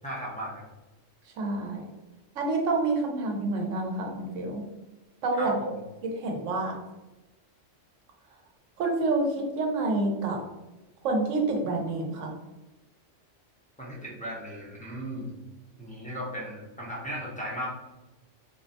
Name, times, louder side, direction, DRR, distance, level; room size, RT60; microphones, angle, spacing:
voice 1, 0.0-0.6 5.4-5.8 13.8-15.3 15.8-17.7, equal, 10° left, -5 dB, 0.4 m, -36 dB
voice 2, 1.4-1.8 2.3-4.6 5.2-5.6 6.0-6.8 8.8-10.4 11.0-12.3, right 2 dB, 80° right, 1 dB, 1.0 m, -28 dB
3.9 x 2.1 x 2.6 m, 1.0 s
omnidirectional pair, 1.3 m